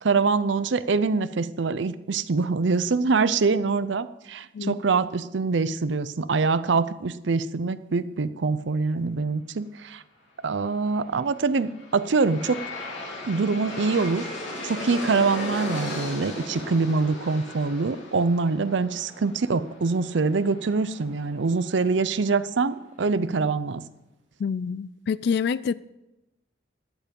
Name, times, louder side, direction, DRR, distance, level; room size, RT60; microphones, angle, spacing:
voice 1, 0.0-10.0 10.4-12.6 13.3-14.3 14.6-23.8, right 4 dB, 70° right, 14 dB, 0.6 m, -24 dB
Aircraft, 11.3-22.4, left 2 dB, 85° left, 3.5 m, -37 dB
voice 2, 24.4-25.7, left 6 dB, 60° left, 18 dB, 0.3 m, -26 dB
13.5 x 9.2 x 5.3 m, 0.96 s
head